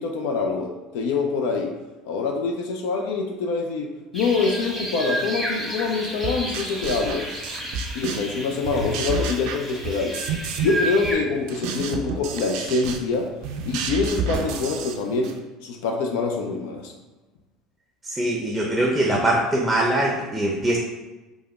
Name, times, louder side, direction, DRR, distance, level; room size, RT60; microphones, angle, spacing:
voice 1, 0.0-1.7 2.1-7.3 7.9-10.2 10.6-13.3 13.6-15.3 15.6-16.9, left 4 dB, 75° left, 3 dB, 0.3 m, -25 dB
sound 1, 4.1-11.1, right 1 dB, 5° left, 1.0 m, -32 dB
sound 2, 6.2-8.4 8.6-10.8 11.0-15.4, right 5 dB, 70° right, 0.4 m, -30 dB
voice 2, 18.0-20.8, right 1 dB, 15° right, -1 dB, 0.5 m, -22 dB
3.3 x 2.0 x 3.4 m, 1.1 s
hypercardioid pair, 80°, 0 cm